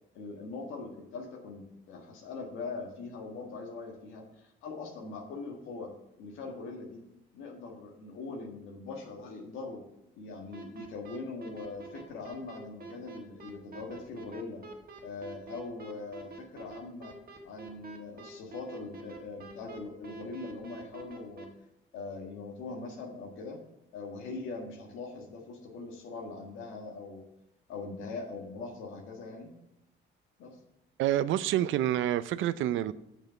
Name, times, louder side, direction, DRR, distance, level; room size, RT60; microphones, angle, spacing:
voice 1, 0.1-5.9 6.2-7.0 7.3-9.8 10.2-14.6 15.0-17.1 17.4-21.6 21.9-23.6 23.9-27.2 27.7-29.5 30.4-30.6, left 3 dB, 90° left, 1.6 m, -41 dB
sound 1, 10.5-21.4, right 4 dB, 50° right, 1.5 m, -46 dB
voice 2, 31.0-32.9, right 12 dB, 80° right, 0.4 m, -28 dB
6.8 x 6.3 x 5.6 m
cardioid pair, 90°, 20 cm